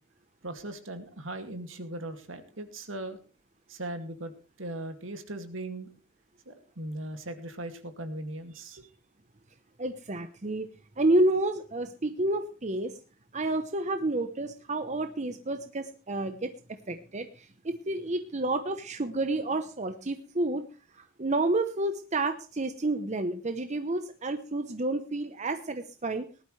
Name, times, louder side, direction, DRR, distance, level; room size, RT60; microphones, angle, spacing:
voice 1, 0.4-3.2 3.7-4.3 4.6-5.9 6.5-8.8, right 1 dB, 70° right, 2.3 m, -38 dB
voice 2, 9.8-10.7 11.0-13.0 13.3-16.5 16.9-20.6 20.9-26.3, right 2 dB, 35° right, 0.9 m, -30 dB
19.0 x 12.0 x 3.3 m
head